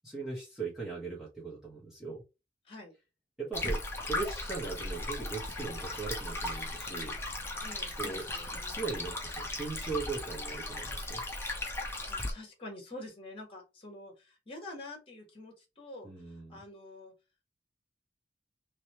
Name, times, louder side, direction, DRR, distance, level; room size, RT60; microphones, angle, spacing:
voice 1, 0.0-2.2 3.4-7.1 8.0-8.2 8.5-11.2 16.0-16.6, right 4 dB, 5° right, -7 dB, 1.6 m, -39 dB
Stream, 3.5-12.3, left 2 dB, 15° left, 1.1 m, -37 dB
voice 2, 7.6-8.8 12.1-17.1, left 2 dB, 30° left, 2 dB, 1.7 m, -47 dB
3.9 x 3.2 x 3.1 m, 0.26 s
head